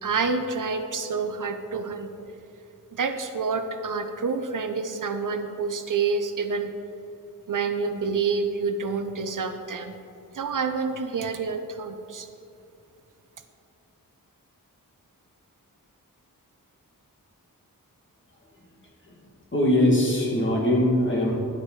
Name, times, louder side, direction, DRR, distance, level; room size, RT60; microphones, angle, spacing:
voice 1, 0.0-2.1 2.9-6.7 7.5-9.9 10.3-12.3, right 4 dB, 65° right, 8 dB, 0.6 m, -28 dB
voice 2, 19.5-21.3, left 1 dB, 35° left, -3 dB, 2.1 m, -22 dB
10.5 x 6.5 x 4.6 m, 2.6 s
wide cardioid pair, 80°, 34 cm